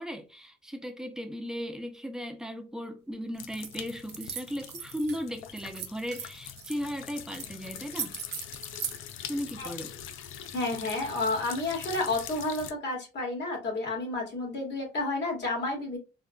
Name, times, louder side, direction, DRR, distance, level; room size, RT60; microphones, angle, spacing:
voice 1, 0.0-8.2 9.3-9.9, equal, 5° right, 0.6 m, -36 dB
sound 1, 3.3-12.7, left 9 dB, 85° left, 0.4 m, -43 dB
sound 2, 3.6-3.7 4.1-5.2 5.6-6.8 7.3-7.5 7.7-9.0, right 8 dB, 60° right, 0.6 m, -38 dB
voice 2, 10.5-16.0, left 2 dB, 60° left, 1.7 m, -31 dB
3.6 x 2.2 x 2.2 m
cardioid pair, 90°, 20 cm